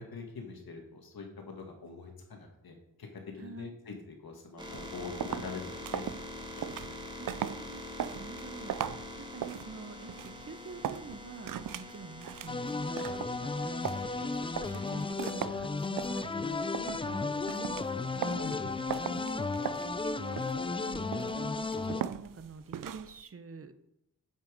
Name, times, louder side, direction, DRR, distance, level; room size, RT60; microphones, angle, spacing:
voice 1, 0.0-7.0 18.4-18.7, left 4 dB, 85° left, 2 dB, 1.9 m, -44 dB
voice 2, 3.4-3.8 7.2-7.8 8.2-18.5 19.0-23.7, right 4 dB, 40° right, 11 dB, 0.8 m, -47 dB
sound 1, 4.6-15.1, left 2 dB, 10° right, 1.5 m, -45 dB
sound 2, 4.7-23.2, right 10 dB, 65° right, 0.5 m, -40 dB
sound 3, 12.5-22.0, left 3 dB, 15° left, 0.3 m, -34 dB
9.1 x 6.0 x 5.2 m, 0.83 s
wide cardioid pair, 110°, 35 cm